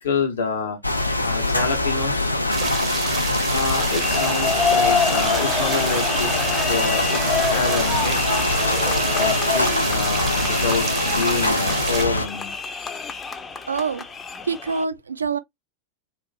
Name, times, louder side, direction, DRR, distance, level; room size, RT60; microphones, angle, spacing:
voice 1, 0.0-0.8 1.2-2.3 3.5-6.3 6.7-8.2 9.1-12.5, left 4 dB, 65° left, 0.8 m, -27 dB
sound 1, 0.8-12.3, left 2 dB, 85° left, 0.4 m, -23 dB
sound 2, 2.5-12.1, right 6 dB, 25° right, 0.6 m, -30 dB
sound 3, 3.8-14.8, left 5 dB, 15° left, 0.5 m, -27 dB
voice 2, 13.7-14.0 14.5-15.4, right 5 dB, 75° right, 0.4 m, -25 dB
3.0 x 2.5 x 2.4 m
figure-of-eight pair, 90°, 0 cm